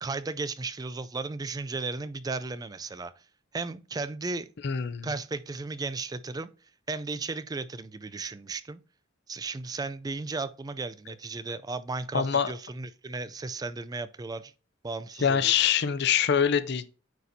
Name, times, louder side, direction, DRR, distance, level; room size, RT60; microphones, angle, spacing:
voice 1, 0.0-3.1 3.5-4.5 5.0-6.5 6.9-8.8 9.3-14.5 14.8-15.5, right 3 dB, 20° right, 0.3 m, -35 dB
voice 2, 4.6-5.1 12.1-12.5 15.2-16.9, left 8 dB, 55° left, 0.5 m, -24 dB
9.2 x 4.2 x 2.7 m
head